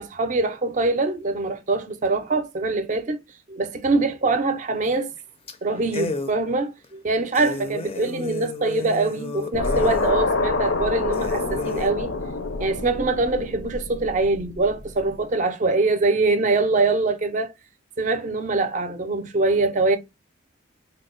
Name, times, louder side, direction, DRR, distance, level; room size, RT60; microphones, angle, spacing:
voice 1, 0.0-3.2 3.5-5.1 5.6-12.1 12.6-17.5 18.0-20.0, right 3 dB, 40° right, 0.4 m, -23 dB
sound 1, 4.9-5.2 5.5-5.6 5.9-6.3 6.8-6.9 7.3-10.1 10.7-10.8 11.1-11.9, left 3 dB, 30° left, 0.4 m, -32 dB
sound 2, 9.5-14.8, left 3 dB, 75° left, 0.6 m, -26 dB
3.2 x 2.0 x 3.6 m
head